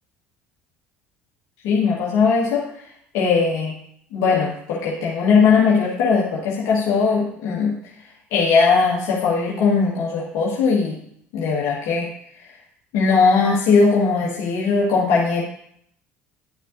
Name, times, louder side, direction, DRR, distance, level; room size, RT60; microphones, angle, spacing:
voice 1, 1.6-2.6 3.1-3.7 4.1-7.7 8.3-11.0 11.3-12.1 12.9-15.4, left 5 dB, 60° left, -4 dB, 1.6 m, -19 dB
10.5 x 6.1 x 2.7 m, 0.69 s
hypercardioid pair, 60°, 7 cm